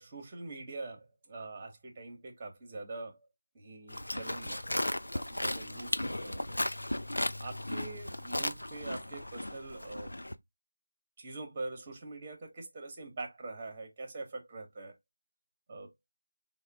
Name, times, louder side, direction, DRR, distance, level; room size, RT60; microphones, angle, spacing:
voice 1, 0.0-3.3 3.5-6.6 7.4-10.1 11.2-14.9 15.7-15.9, right 3 dB, 20° right, 0.9 m, -44 dB
Livestock farm animals working animals, 3.9-10.3, left 1 dB, 90° left, 0.4 m, -35 dB
3.6 x 2.1 x 3.3 m
figure-of-eight pair, 170°, 0 cm